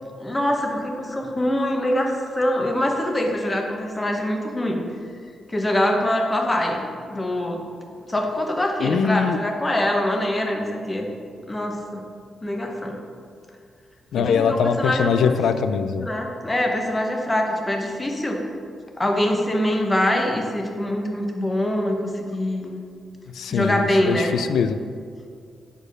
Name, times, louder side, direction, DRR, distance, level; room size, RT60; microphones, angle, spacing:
voice 1, 0.2-4.8 5.5-7.6 8.1-11.1 11.5-12.0 12.4-13.0 14.2-15.4 16.0-18.4 19.0-22.8 23.5-24.3, left 1 dB, 20° left, 2 dB, 0.9 m, -24 dB
voice 2, 8.8-9.4 14.1-16.1 23.3-24.8, left 6 dB, 85° left, 10 dB, 0.3 m, -22 dB
5.0 x 4.5 x 6.1 m, 2.1 s
cardioid pair, 100°, 0 cm